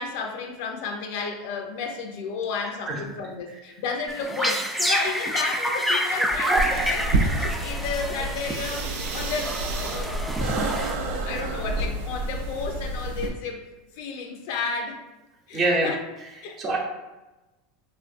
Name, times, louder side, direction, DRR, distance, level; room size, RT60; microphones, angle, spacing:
voice 1, 0.0-8.9 9.1-10.1 10.7-10.8 11.2-13.7 13.9-15.0 15.5-16.0 16.4-16.8, left 5 dB, 70° left, 3 dB, 0.5 m, -32 dB
voice 2, 2.6-3.0 3.5-3.6 15.5-15.9 16.4-16.8, right 2 dB, 35° right, 0 dB, 0.8 m, -26 dB
sound 1, 4.1-11.4, right 1 dB, 5° right, 0.3 m, -28 dB
sound 2, 6.6-13.3, right 2 dB, 80° right, 0.4 m, -29 dB
3.7 x 2.4 x 2.5 m, 1.1 s
supercardioid pair, 125°, 0 cm